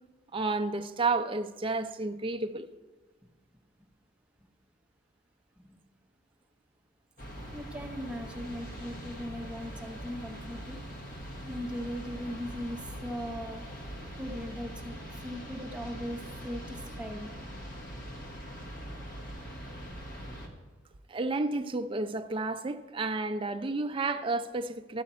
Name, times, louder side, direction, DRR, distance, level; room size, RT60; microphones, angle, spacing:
voice 1, 0.3-2.7 21.1-25.0, right 3 dB, 30° right, 0.4 m, -31 dB
sound 1, 7.2-20.5, equal, 50° left, 1.2 m, -42 dB
voice 2, 7.5-10.8 11.4-13.6 14.2-14.9 15.2-17.4, equal, 5° right, 0.8 m, -39 dB
12.5 x 7.2 x 4.2 m
head